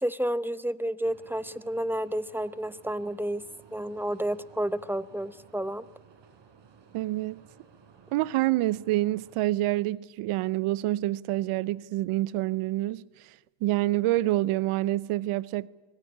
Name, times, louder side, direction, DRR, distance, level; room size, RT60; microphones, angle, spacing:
voice 1, 0.0-3.4 3.7-5.8, right 1 dB, 5° right, 0.9 m, -30 dB
sound 1, 1.0-9.4, right 6 dB, 60° right, 4.1 m, -56 dB
voice 2, 6.9-7.4 8.1-13.3 13.6-15.7, right 16 dB, 80° right, 0.8 m, -27 dB
24.0 x 18.0 x 9.9 m
supercardioid pair, 80°, 50 cm